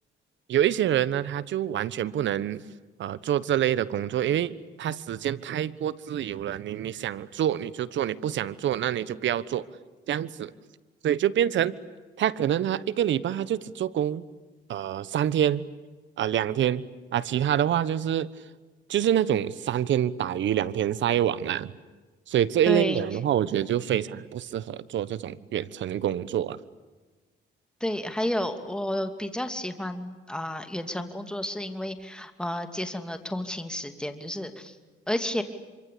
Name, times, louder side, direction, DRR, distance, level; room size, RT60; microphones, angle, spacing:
voice 1, 0.5-2.6 3.0-9.6 10.1-10.5 11.0-11.7 12.2-14.2 14.7-15.6 16.2-16.8 17.1-18.3 18.9-21.7 22.3-26.6, right 10 dB, 70° right, 17 dB, 1.2 m, -26 dB
voice 2, 22.7-23.0 27.8-34.7 35.1-35.4, left 1 dB, 5° left, 7 dB, 2.7 m, -31 dB
26.5 x 25.0 x 8.6 m, 1.3 s
cardioid pair, 90°, 20 cm